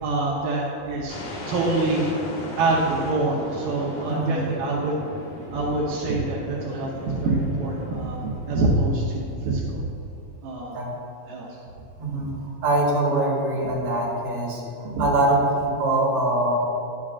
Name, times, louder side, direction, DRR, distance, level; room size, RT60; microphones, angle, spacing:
voice 1, 0.0-1.2 1.5-2.1 2.6-5.0 5.5-9.8 10.4-10.8 11.3-11.5 14.9-15.1, right 2 dB, 80° right, -4 dB, 2.6 m, -25 dB
sound 1, 1.1-9.0, left 2 dB, 90° left, 3.2 m, -37 dB
voice 2, 4.1-4.4 10.7-10.9 12.0-12.3 12.6-14.6 15.0-16.5, right 2 dB, 50° right, -6 dB, 3.0 m, -23 dB
11.0 x 8.5 x 2.4 m, 2.7 s
omnidirectional pair, 4.0 m